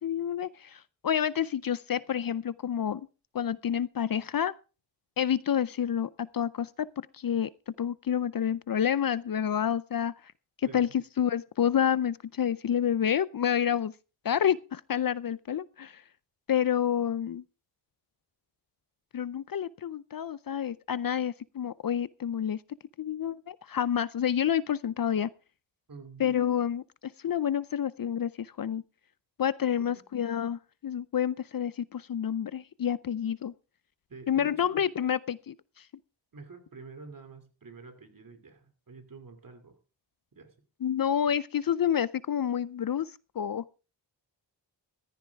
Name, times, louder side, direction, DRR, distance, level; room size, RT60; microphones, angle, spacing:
voice 1, 0.0-3.1 3.3-4.5 5.2-6.9 7.1-10.3 10.6-10.9 11.2-13.9 14.2-16.0 16.5-17.4 19.1-22.6 23.0-25.3 26.2-28.8 29.4-33.5 34.3-35.9 40.8-43.6, left 9 dB, 50° left, 0.5 m, -29 dB
voice 2, 25.9-26.4 29.8-30.0 34.1-34.8 36.3-39.8 40.3-40.5, right 4 dB, 45° right, 2.7 m, -48 dB
15.0 x 13.5 x 3.5 m
wide cardioid pair, 125°, 44 cm